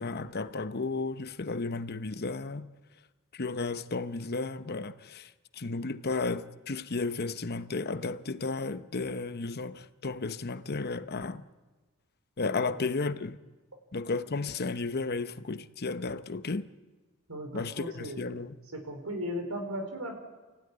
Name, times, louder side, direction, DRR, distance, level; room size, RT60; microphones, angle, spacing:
voice 1, 0.0-2.7 3.3-5.3 5.6-11.4 12.4-13.4 13.9-16.7 17.5-18.5, left 3 dB, 45° left, 0.9 m, -33 dB
voice 2, 17.3-18.4 18.7-20.1, equal, 85° right, 4.8 m, -37 dB
28.5 x 16.5 x 9.9 m
head